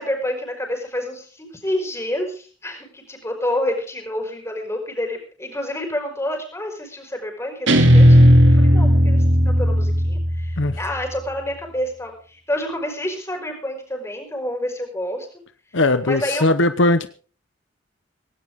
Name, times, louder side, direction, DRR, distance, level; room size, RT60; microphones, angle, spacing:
voice 1, 0.0-8.2 8.4-9.2 9.4-15.3 16.0-16.5, left 1 dB, 15° left, 3 dB, 5.1 m, -28 dB
Guitar, 7.7-10.9, equal, 85° right, 2.7 m, -14 dB
voice 2, 15.7-17.1, left 2 dB, 85° left, 11 dB, 1.0 m, -19 dB
17.5 x 17.5 x 3.7 m, 0.40 s
head